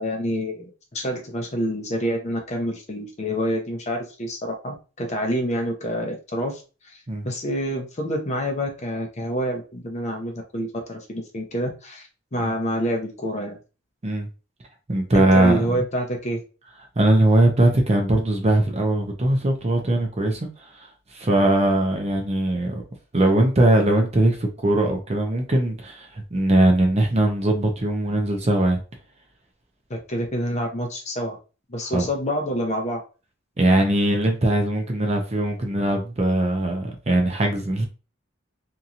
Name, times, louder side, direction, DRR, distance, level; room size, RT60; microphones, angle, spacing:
voice 1, 0.0-6.6 6.9-7.0 7.2-13.6 15.1-16.4 29.9-31.4 31.7-33.0, equal, 35° left, 0.7 m, -27 dB
voice 2, 14.9-15.8 17.0-20.5 20.7-20.9 21.1-22.8 23.1-28.8 31.9-32.1 33.6-37.9, right 1 dB, 30° right, 0.6 m, -20 dB
2.9 x 2.7 x 2.5 m
head